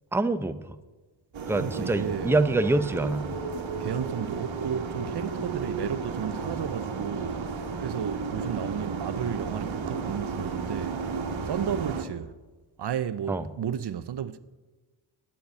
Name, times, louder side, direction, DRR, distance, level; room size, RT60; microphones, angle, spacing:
voice 1, 0.1-0.6 1.5-3.3 13.3-13.4, right 2 dB, 5° right, 0.7 m, -25 dB
sound 1, 1.3-12.0, right 4 dB, 75° right, 1.6 m, -33 dB
voice 2, 1.5-2.3 3.8-11.0 11.5-12.3 12.8-14.4, right 9 dB, 60° right, 0.7 m, -33 dB
9.3 x 8.6 x 9.5 m
cardioid pair, 65°, 46 cm